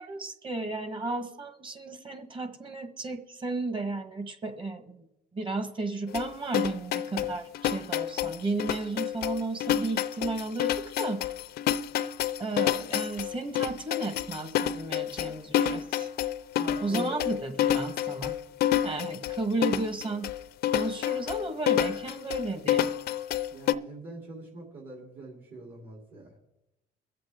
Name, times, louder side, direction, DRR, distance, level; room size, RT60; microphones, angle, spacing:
voice 1, 0.0-5.1 5.3-11.2 12.4-16.1 16.8-18.3 18.8-20.3 20.7-22.9, right 3 dB, 30° right, 8 dB, 1.4 m, -34 dB
sound 1, 6.1-23.7, left 11 dB, 70° left, 0.5 m, -28 dB
voice 2, 16.5-17.1 18.7-18.9 23.5-26.3, right 2 dB, 60° right, -2 dB, 3.3 m, -43 dB
22.5 x 7.6 x 3.7 m, 0.90 s
cardioid pair, 110°, 17 cm